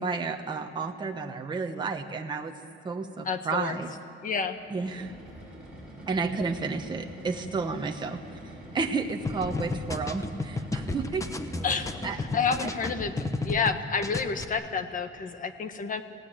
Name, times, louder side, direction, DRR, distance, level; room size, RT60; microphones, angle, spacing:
voice 1, 0.0-2.5 2.8-3.9 4.7-5.1 6.1-8.2 8.7-11.3 12.0-12.2, right 4 dB, 20° right, 3 dB, 1.1 m, -31 dB
voice 2, 3.2-3.8 4.2-4.6 11.6-16.0, left 5 dB, 40° left, 8 dB, 1.4 m, -30 dB
sound 1, 4.5-13.6, right 1 dB, 5° right, 6.9 m, -45 dB
sound 2, 9.2-13.7 14.0-14.4, left 3 dB, 15° left, 1.0 m, -32 dB
28.0 x 18.0 x 8.9 m, 2.6 s
wide cardioid pair, 180°, 20 cm